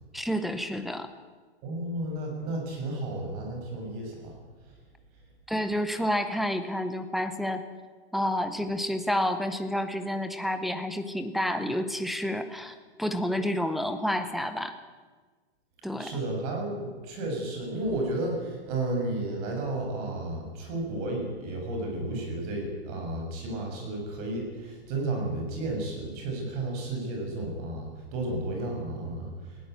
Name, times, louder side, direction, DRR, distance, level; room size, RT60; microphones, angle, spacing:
voice 1, 0.1-1.1 5.5-7.6 8.1-14.7 15.8-16.1, equal, ahead, 7 dB, 0.6 m, -29 dB
voice 2, 1.6-4.4 16.0-29.7, right 2 dB, 35° right, 1 dB, 7.0 m, -32 dB
20.0 x 16.5 x 9.3 m, 1.4 s
hypercardioid pair, 165°, 32 cm